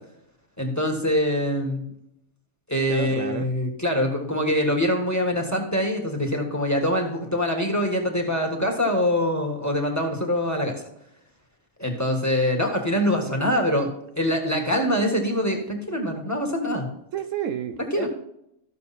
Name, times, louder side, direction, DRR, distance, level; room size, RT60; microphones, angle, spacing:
voice 1, 0.6-1.8 2.7-10.8 11.8-16.9 17.9-18.1, left 1 dB, 10° left, 2 dB, 1.6 m, -24 dB
voice 2, 2.9-3.5 17.1-18.1, right 9 dB, 70° right, 9 dB, 0.9 m, -30 dB
14.0 x 6.6 x 4.2 m, 0.78 s
omnidirectional pair, 1.5 m